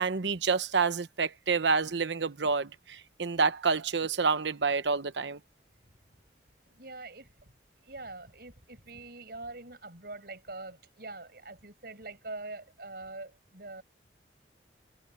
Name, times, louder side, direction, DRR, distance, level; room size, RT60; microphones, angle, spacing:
voice 1, 0.0-5.4, right 5 dB, 80° right, 0.9 m, -28 dB
voice 2, 6.7-7.5 7.8-13.8, right 2 dB, 55° right, 6.5 m, -44 dB
head